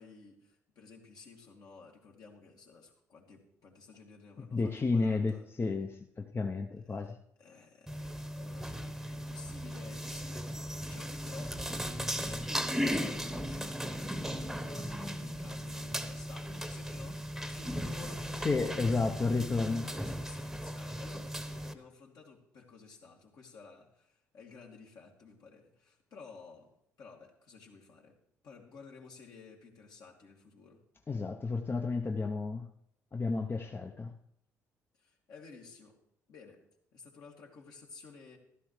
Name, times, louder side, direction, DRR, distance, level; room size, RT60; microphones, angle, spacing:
voice 1, 0.0-5.5 6.8-7.0 7.4-19.2 19.6-26.7 27.0-28.2 28.4-30.8 35.0-36.0 36.3-36.6 36.9-38.4, left 4 dB, 60° left, -1 dB, 2.4 m, -53 dB
voice 2, 4.5-7.2 18.4-19.9 31.1-32.7 33.1-34.1, left 3 dB, 30° left, 4 dB, 0.8 m, -32 dB
sound 1, 7.9-21.7, equal, 5° right, 1.1 m, -37 dB
14.0 x 12.5 x 3.3 m, 0.73 s
hypercardioid pair, 50°, 7 cm